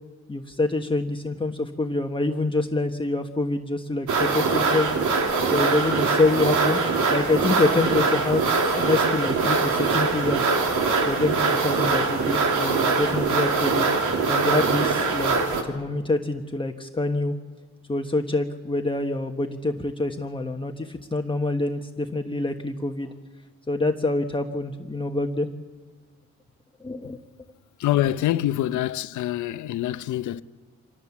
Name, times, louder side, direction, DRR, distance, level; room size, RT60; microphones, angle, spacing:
voice 1, 0.3-4.9 5.5-10.4 11.1-13.9 14.3-15.4 15.6-17.4 17.9-23.1 23.7-25.5 26.8-27.2, left 2 dB, 15° left, 1.2 m, -26 dB
sound 1, 4.1-15.6, right 4 dB, 75° right, 3.1 m, -23 dB
voice 2, 27.8-30.4, left 13 dB, 75° left, 0.7 m, -25 dB
26.5 x 18.0 x 7.3 m
cardioid pair, 90°, 30 cm